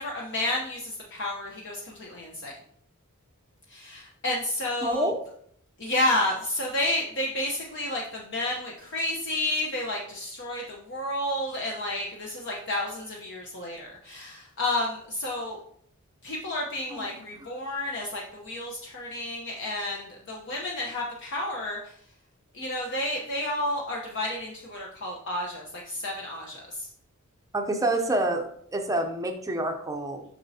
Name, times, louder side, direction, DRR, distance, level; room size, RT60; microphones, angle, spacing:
voice 1, 0.0-2.6 3.7-5.1 5.8-15.6 16.2-21.9 22.5-26.9, left 1 dB, 55° left, -1 dB, 0.9 m, -31 dB
voice 2, 4.8-5.2 16.9-17.2 27.5-30.2, right 1 dB, 15° right, 4 dB, 0.6 m, -28 dB
7.3 x 6.1 x 2.7 m, 0.64 s
head